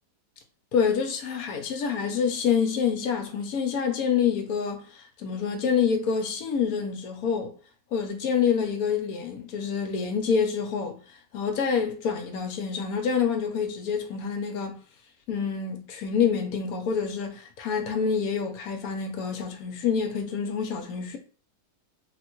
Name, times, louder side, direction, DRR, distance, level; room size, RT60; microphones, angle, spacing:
voice 1, 0.7-7.5 7.9-11.0 11.3-14.8 15.3-21.2, left 6 dB, 70° left, 0.9 m, -27 dB
3.5 x 2.0 x 3.0 m
omnidirectional pair, 1.9 m